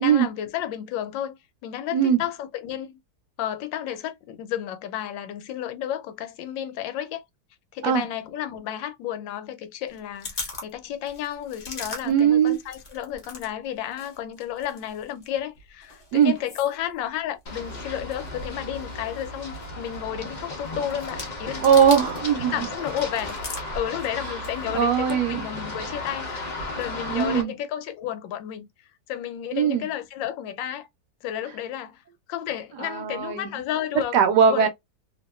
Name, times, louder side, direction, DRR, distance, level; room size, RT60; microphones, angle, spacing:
voice 1, 0.0-2.9 3.4-7.2 7.7-21.7 22.4-23.4 23.7-28.7 29.1-30.9 31.2-32.0 32.3-34.2 34.5-34.7, left 11 dB, 85° left, 1.3 m, -32 dB
sound 1, 9.9-13.5 13.8-22.4 22.7-24.8, left 3 dB, 40° left, 0.8 m, -41 dB
voice 2, 12.0-12.6 16.1-16.3 21.6-22.5 24.7-25.5 27.1-27.5 29.5-29.9 32.8-33.5 34.1-34.7, right 8 dB, 70° right, 1.1 m, -20 dB
Run, 17.5-27.4, left 2 dB, 60° left, 0.4 m, -35 dB
2.8 x 2.6 x 2.2 m
omnidirectional pair, 2.0 m